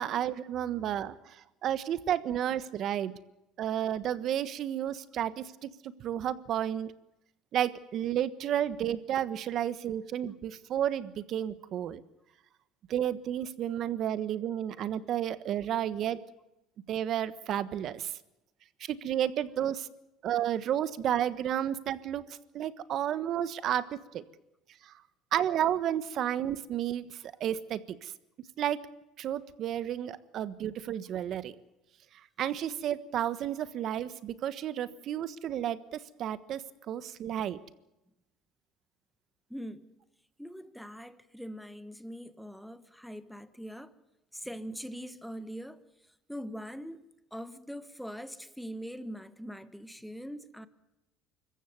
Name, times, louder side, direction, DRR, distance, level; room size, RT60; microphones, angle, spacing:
voice 1, 0.0-3.1 3.6-6.9 7.5-12.0 12.9-16.2 16.9-18.1 18.8-19.9 20.2-22.2 22.5-24.2 24.8-24.9 25.3-28.1 28.6-28.9 29.2-31.5 32.4-36.6 36.9-37.6, right 10 dB, 50° right, 1.3 m, -32 dB
voice 2, 39.5-40.0 40.4-43.9 44.3-45.8 46.3-47.0 47.3-50.7, equal, ahead, 1.4 m, -42 dB
25.5 x 14.5 x 9.5 m
cardioid pair, 120°, 0 cm